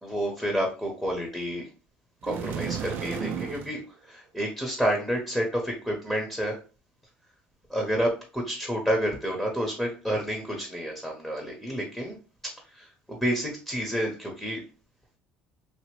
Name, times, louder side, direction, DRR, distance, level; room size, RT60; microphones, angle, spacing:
voice 1, 0.0-1.7 2.2-6.6 7.7-12.2 12.7-14.6, equal, ahead, 1 dB, 1.0 m, -29 dB
sound 1, 2.2-3.8, right 7 dB, 55° right, 0.5 m, -33 dB
2.9 x 2.7 x 3.1 m, 0.34 s
supercardioid pair, 100°, 4 cm